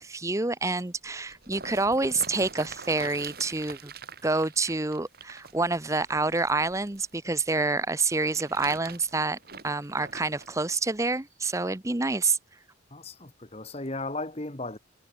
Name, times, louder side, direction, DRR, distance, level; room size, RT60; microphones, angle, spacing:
voice 1, 0.0-3.9 4.2-9.4 9.6-12.4, right 3 dB, 15° right, 0.7 m, -27 dB
sound 1, 1.0-7.1 8.0-10.5 11.2-11.3, right 4 dB, 50° right, 5.7 m, -44 dB
voice 2, 12.9-14.8, left 2 dB, 35° left, 1.8 m, -35 dB
head